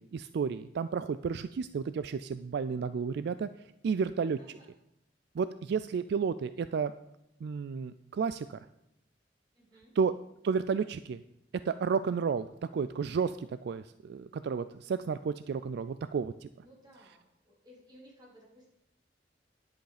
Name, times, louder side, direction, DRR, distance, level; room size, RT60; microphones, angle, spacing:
voice 1, 0.0-4.4 5.3-6.9 7.4-8.7 10.0-10.1 10.4-11.2 11.7-16.5, right 6 dB, 65° right, 13 dB, 0.3 m, -32 dB
voice 2, 4.4-4.7 9.5-10.0 16.6-18.7, equal, 25° right, -4 dB, 3.8 m, -58 dB
10.5 x 7.9 x 5.0 m, 0.84 s
head